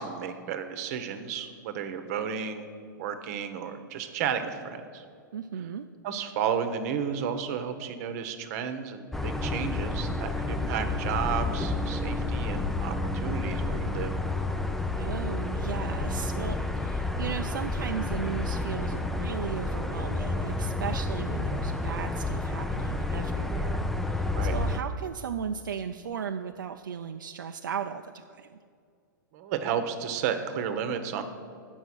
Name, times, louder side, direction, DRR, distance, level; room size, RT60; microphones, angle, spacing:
voice 1, 0.0-2.7 3.0-5.0 6.0-14.1 24.3-24.5 29.3-31.2, right 7 dB, 55° right, 9 dB, 0.9 m, -32 dB
voice 2, 5.3-5.9 15.0-28.6, right 7 dB, 80° right, 6 dB, 0.4 m, -36 dB
sound 1, 9.1-24.8, left 2 dB, ahead, 0.4 m, -30 dB
8.1 x 6.2 x 6.0 m, 2.3 s
hypercardioid pair, 105°, 11 cm